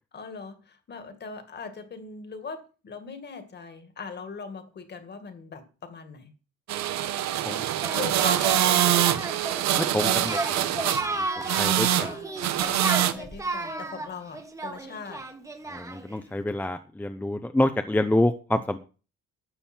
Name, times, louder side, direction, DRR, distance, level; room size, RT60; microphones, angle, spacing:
voice 1, 0.1-6.3 7.5-9.2 11.6-12.3 12.6-15.2, left 5 dB, 35° left, 8 dB, 2.1 m, -40 dB
sound 1, 6.7-11.1 11.4-12.1 12.4-13.1, right 12 dB, 70° right, 1.1 m, -24 dB
Singing, 7.8-16.2, right 2 dB, 10° right, 1.3 m, -33 dB
voice 2, 9.8-10.6 11.2-11.3 11.5-12.1 15.7-18.8, left 1 dB, 5° left, 8 dB, 0.7 m, -27 dB
13.0 x 8.9 x 4.4 m, 0.35 s
cardioid pair, 145°, 29 cm